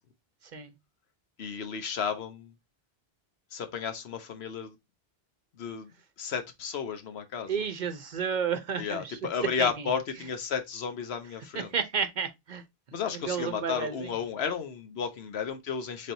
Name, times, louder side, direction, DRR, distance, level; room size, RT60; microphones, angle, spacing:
voice 1, 1.4-2.5 3.5-4.8 5.6-5.9 6.2-7.5 8.8-11.7 12.9-16.1, left 7 dB, 85° left, 1.0 m, -33 dB
voice 2, 7.5-9.2 9.6-9.9 11.5-12.6 13.1-14.1, right 6 dB, 55° right, 0.6 m, -32 dB
4.2 x 3.3 x 2.6 m
omnidirectional pair, 1.1 m